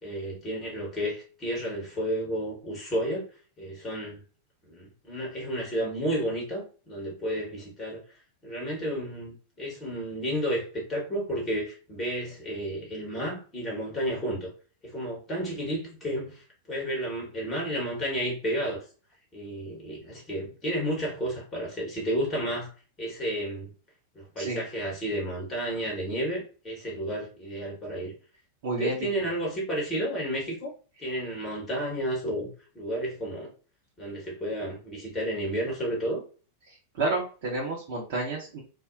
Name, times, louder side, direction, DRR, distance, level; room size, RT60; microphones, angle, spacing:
voice 1, 0.0-3.3 3.6-4.2 4.6-8.0 8.4-14.5 14.8-18.8 19.3-22.7 23.0-23.7 24.3-28.1 28.8-30.7 31.0-32.5 32.7-33.5 34.0-36.2, equal, 20° left, -1 dB, 1.1 m, -31 dB
voice 2, 28.6-29.1 36.7-38.6, right 2 dB, 50° right, -4 dB, 0.7 m, -30 dB
2.5 x 2.0 x 2.4 m, 0.37 s
figure-of-eight pair, 90°, 0 cm